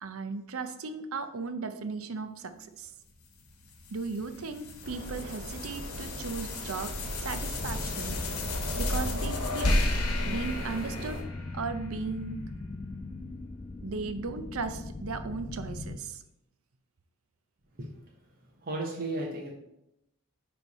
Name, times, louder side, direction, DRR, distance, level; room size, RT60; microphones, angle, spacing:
voice 1, 0.0-2.9 3.9-8.2 8.8-9.9 10.2-11.2 11.5-12.4 13.8-16.2, right 4 dB, 75° right, 9 dB, 0.6 m, -36 dB
sound 1, 3.2-11.8, left 2 dB, 90° left, 1.1 m, -34 dB
sound 2, 4.8-11.2, equal, 60° right, 1.2 m, -37 dB
sound 3, 7.6-16.0, left 2 dB, 25° left, 0.3 m, -40 dB
voice 2, 18.6-19.5, right 2 dB, 40° right, -2 dB, 1.0 m, -34 dB
9.8 x 3.4 x 4.1 m, 0.84 s
head